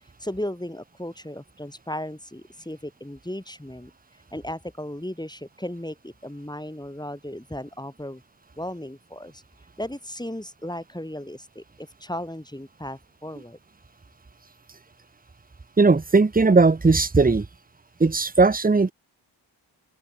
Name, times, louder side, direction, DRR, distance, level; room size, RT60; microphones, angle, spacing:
voice 1, 0.2-3.9 4.3-8.2 8.6-9.4 9.8-13.6, left 1 dB, 10° left, 3.4 m, -35 dB
voice 2, 15.8-17.5 18.0-18.9, right 3 dB, 20° right, 0.8 m, -18 dB
open air
wide cardioid pair, 70°, 47 cm